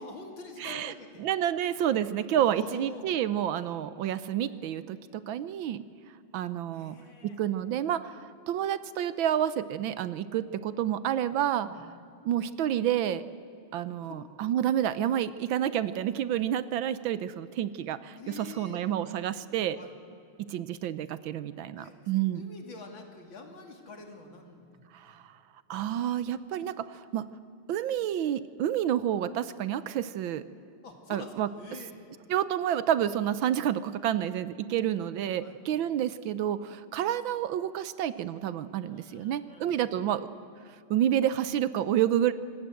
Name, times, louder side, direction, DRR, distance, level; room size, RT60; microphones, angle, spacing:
voice 1, 0.0-1.3 2.3-3.0 6.7-7.4 11.6-11.8 14.0-14.2 14.6-14.7 18.1-18.8 19.8-19.9 21.8-21.9 22.3-24.9 30.8-31.9 35.4-35.6 38.7-40.0, left 3 dB, 65° left, 4 dB, 3.3 m, -46 dB
voice 2, 0.6-0.9 1.2-5.8 6.3-7.0 7.2-11.7 12.2-13.2 13.7-19.8 20.4-22.4 24.9-25.2 25.7-27.2 27.7-30.4 31.1-31.5 32.3-40.3 40.9-42.3, right 10 dB, 75° right, 15 dB, 1.4 m, -29 dB
25.0 x 19.5 x 7.8 m, 2.7 s
omnidirectional pair, 2.3 m